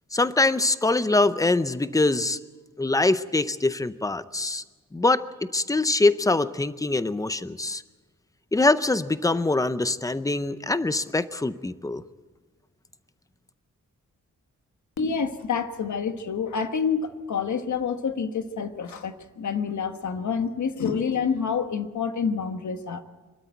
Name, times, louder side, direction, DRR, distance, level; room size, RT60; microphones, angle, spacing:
voice 1, 0.1-2.4 2.8-4.6 4.9-5.3 5.5-7.8 8.5-12.0, left 2 dB, 10° left, 14 dB, 0.6 m, -23 dB
voice 2, 15.0-23.0, left 6 dB, 65° left, 8 dB, 1.4 m, -28 dB
24.0 x 13.0 x 9.2 m, 1.3 s
wide cardioid pair, 160°, 31 cm